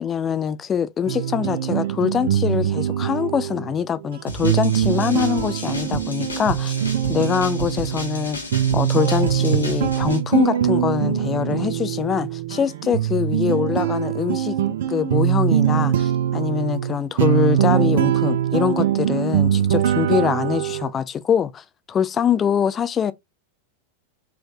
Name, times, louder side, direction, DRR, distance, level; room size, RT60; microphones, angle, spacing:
voice 1, 0.0-6.8 7.1-8.4 8.7-14.6 14.9-23.1, left 8 dB, 25° left, 0.5 m, -23 dB
sound 1, 1.1-20.9, right 10 dB, 55° right, 0.6 m, -22 dB
sound 2, 4.3-10.2, equal, 75° left, 1.6 m, -32 dB
4.5 x 3.2 x 2.6 m
figure-of-eight pair, 90°, 0 cm